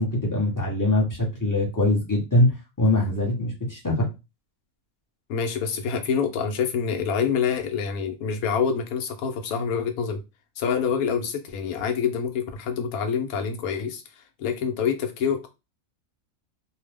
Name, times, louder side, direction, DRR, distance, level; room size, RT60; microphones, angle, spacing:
voice 1, 0.0-4.1, left 1 dB, 15° left, 0.7 m, -23 dB
voice 2, 5.3-10.2 10.6-15.5, left 6 dB, 80° left, 1.1 m, -26 dB
2.8 x 2.0 x 3.3 m
omnidirectional pair, 1.5 m